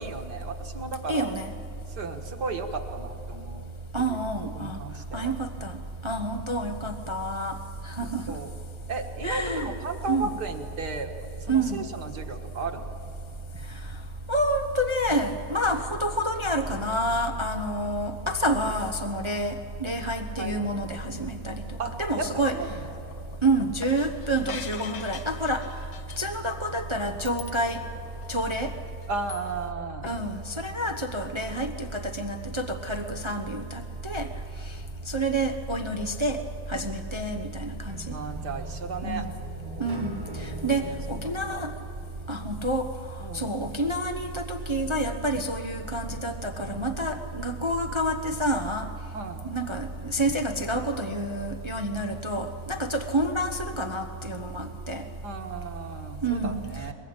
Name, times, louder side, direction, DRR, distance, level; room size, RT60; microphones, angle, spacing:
voice 1, 0.0-1.3 1.9-3.7 4.1-4.2 4.6-5.3 8.0-8.5 8.9-11.1 11.4-12.9 20.4-20.6 21.8-22.9 29.1-30.1 38.1-39.3 40.8-40.9 41.2-41.6 43.2-43.5 49.1-49.4 55.2-56.9, right 4 dB, 55° right, 4 dB, 2.1 m, -35 dB
voice 2, 1.1-1.5 3.9-4.8 5.1-5.8 6.0-7.6 7.8-8.4 9.2-9.7 10.1-10.3 11.5-11.8 14.3-21.6 22.0-22.6 23.4-25.6 26.2-27.8 28.3-28.7 30.0-34.3 35.1-36.4 36.7-38.0 39.0-39.3 39.8-41.7 42.3-42.9 43.3-48.9 49.4-55.0 56.2-56.6, right 1 dB, 35° right, 6 dB, 0.4 m, -28 dB
sound 1, 21.4-29.8 30.0-30.2, left 7 dB, 70° left, 2.0 m, -45 dB
sound 2, 37.9-42.8, right 1 dB, 85° right, 3.2 m, -42 dB
22.5 x 22.0 x 8.9 m, 2.5 s
omnidirectional pair, 2.3 m